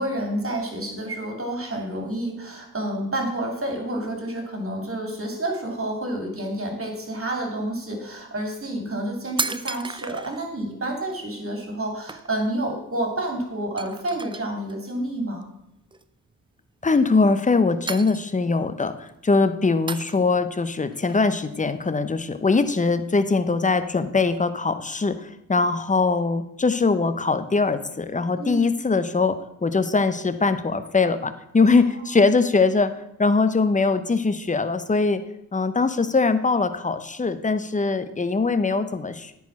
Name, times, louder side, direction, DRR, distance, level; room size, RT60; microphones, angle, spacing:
voice 1, 0.0-15.4 28.4-28.6 31.7-31.8, right 1 dB, 35° right, 2 dB, 2.9 m, -29 dB
sound 1, 7.0-7.1 7.7-7.9 8.7-8.8 9.0-10.5 11.1-11.2 11.6-11.8 12.1-12.6 12.9-13.0 13.3-13.4 13.8-14.7 15.9-16.3 16.8-17.5 17.9-18.6 19.0-19.3 19.9-20.5 20.9-22.2 22.5-24.5, right 3 dB, 15° right, 0.5 m, -35 dB
voice 2, 16.8-32.9 33.2-35.2 35.5-39.3, left 4 dB, 20° left, 12 dB, 0.8 m, -22 dB
9.3 x 4.8 x 5.9 m, 0.82 s
supercardioid pair, 40°, 40 cm